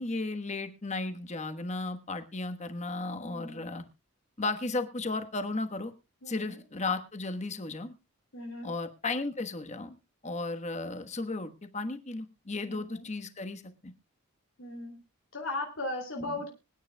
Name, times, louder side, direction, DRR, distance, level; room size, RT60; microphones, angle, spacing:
voice 1, 0.0-3.8 4.4-5.9 6.3-7.9 8.6-10.0 10.2-13.9 16.3-16.4, left 3 dB, 30° left, 8 dB, 1.2 m, -35 dB
voice 2, 3.2-3.8 6.2-6.6 8.3-8.7 12.7-13.1 14.6-15.0 15.3-16.5, left 2 dB, 65° left, 1 dB, 2.7 m, -38 dB
25.0 x 9.8 x 2.2 m, 0.27 s
head